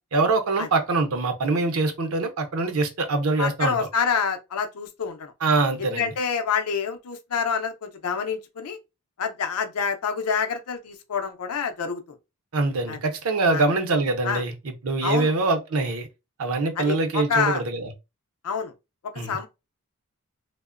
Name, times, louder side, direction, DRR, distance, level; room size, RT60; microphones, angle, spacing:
voice 1, 0.1-3.9 5.4-6.1 12.5-16.1 16.4-17.9 19.2-19.4, right 3 dB, 65° right, 0.6 m, -24 dB
voice 2, 3.4-5.3 5.8-8.8 9.2-12.0 12.9-13.0 13.5-13.6 14.2-14.4 15.0-15.3 16.8-17.6 18.4-18.7 19.3-19.5, left 6 dB, 85° left, 0.5 m, -27 dB
2.8 x 2.0 x 2.4 m
head